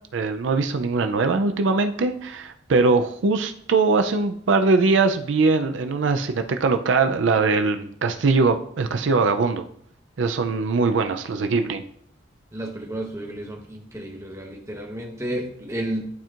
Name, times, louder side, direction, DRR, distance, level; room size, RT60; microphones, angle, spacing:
voice 1, 0.1-9.6 10.2-11.8, right 4 dB, 80° right, 7 dB, 0.5 m, -21 dB
voice 2, 12.5-16.1, right 1 dB, 15° right, 1 dB, 1.0 m, -32 dB
11.5 x 4.4 x 2.5 m, 0.66 s
head